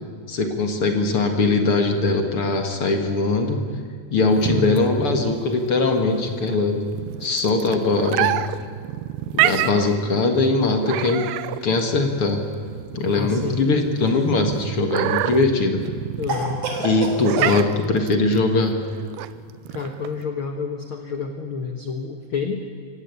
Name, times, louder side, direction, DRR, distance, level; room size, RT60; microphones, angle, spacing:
voice 1, 0.3-3.6 4.1-6.9 7.2-8.5 9.3-11.3 11.6-12.4 12.9-15.8 16.8-18.8, left 3 dB, 45° left, 5 dB, 2.1 m, -21 dB
sound 1, 4.3-20.2, right 14 dB, 90° right, 2.7 m, -28 dB
voice 2, 4.5-4.8 13.1-13.6 16.2-16.6 17.3-17.6 19.7-22.7, left 5 dB, 60° left, 5 dB, 1.3 m, -29 dB
Cough, 14.0-14.8 16.3-17.6, right 2 dB, 55° right, 4.5 m, -29 dB
25.0 x 17.5 x 8.3 m, 2.2 s
omnidirectional pair, 4.4 m